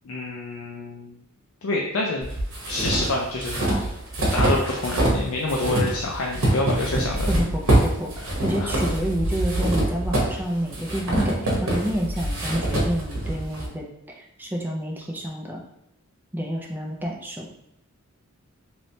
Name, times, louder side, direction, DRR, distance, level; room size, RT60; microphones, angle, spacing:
voice 1, 0.1-1.2 1.6-2.3 2.7-3.9 4.3-7.3 8.6-8.7, left 2 dB, 70° left, -1 dB, 0.4 m, -27 dB
sound 1, 2.2-5.2 5.5-13.7, right 1 dB, 65° right, 1.0 m, -24 dB
voice 2, 7.3-13.9 14.2-15.6 16.3-17.6, equal, 10° right, -1 dB, 0.4 m, -29 dB
3.1 x 3.1 x 2.7 m, 0.81 s
head